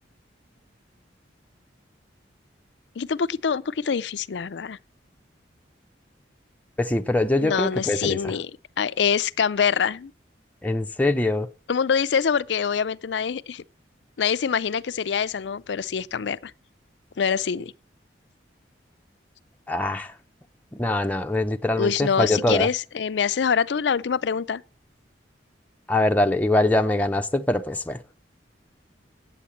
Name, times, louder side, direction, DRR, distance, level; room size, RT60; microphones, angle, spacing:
voice 1, 3.0-4.8 7.4-8.5 8.8-10.1 11.7-13.6 14.2-16.5 17.2-17.7 21.8-24.6, left 6 dB, 70° left, 0.5 m, -25 dB
voice 2, 6.8-8.4 10.6-11.5 19.7-20.2 20.7-22.7 25.9-28.0, left 1 dB, 10° left, 0.6 m, -23 dB
8.5 x 8.3 x 7.2 m
head